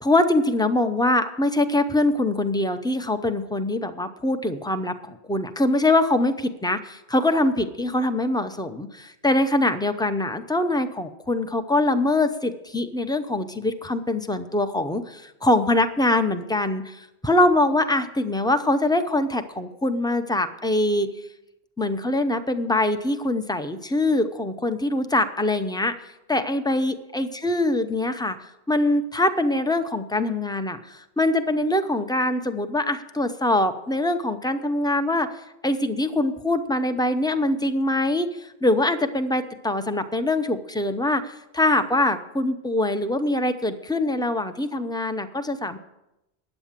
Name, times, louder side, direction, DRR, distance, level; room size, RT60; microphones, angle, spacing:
voice 1, 0.0-21.1 21.8-25.9 26.3-35.3 35.6-45.8, left 1 dB, 5° left, 8 dB, 0.4 m, -23 dB
10.0 x 8.3 x 7.3 m, 0.90 s
omnidirectional pair, 1.1 m